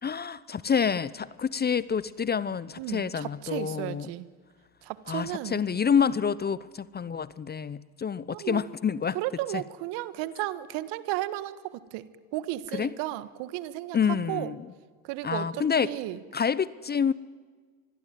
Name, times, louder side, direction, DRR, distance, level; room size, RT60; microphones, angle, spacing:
voice 1, 0.0-4.1 5.1-9.2 9.5-9.6 12.7-13.0 13.9-14.7 15.2-16.0 16.3-17.1, left 7 dB, 20° left, 18 dB, 0.7 m, -28 dB
voice 2, 2.8-4.2 4.9-5.6 8.3-8.6 9.1-11.6 11.9-12.0 12.3-14.0 14.3-14.5 15.1-15.5 15.8-16.2, right 16 dB, 60° right, 14 dB, 1.6 m, -33 dB
26.0 x 21.0 x 9.3 m, 1.5 s
hypercardioid pair, 85°, 46 cm